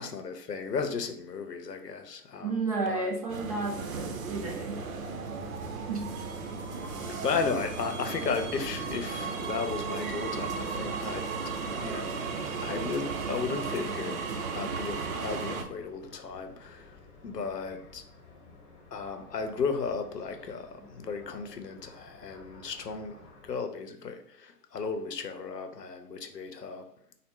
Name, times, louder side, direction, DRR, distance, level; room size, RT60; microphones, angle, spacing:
voice 1, 0.0-2.6 2.9-3.1 7.1-11.3 11.8-12.2 12.6-18.0 18.9-26.9, left 5 dB, 90° left, 0.8 m, -35 dB
voice 2, 2.4-4.9 5.9-6.1, right 3 dB, 25° right, 0.5 m, -32 dB
sound 1, 3.3-15.6, right 5 dB, 60° right, 0.7 m, -35 dB
sound 2, 4.2-23.5, left 3 dB, 30° left, 0.9 m, -52 dB
4.1 x 2.0 x 3.7 m
hypercardioid pair, 135°, 47 cm